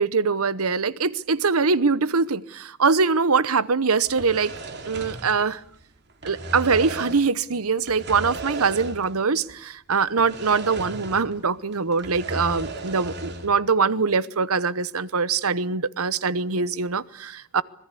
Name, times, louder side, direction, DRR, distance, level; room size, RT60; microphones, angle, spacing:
voice 1, 0.0-4.5 4.8-5.6 6.2-17.6, right 4 dB, 75° right, 1.0 m, -23 dB
sound 1, 4.1-5.8 6.1-7.3 7.8-9.2 9.5-9.6 10.2-11.4 11.7-13.6, right 2 dB, 50° right, 2.9 m, -35 dB
25.5 x 21.0 x 8.4 m
head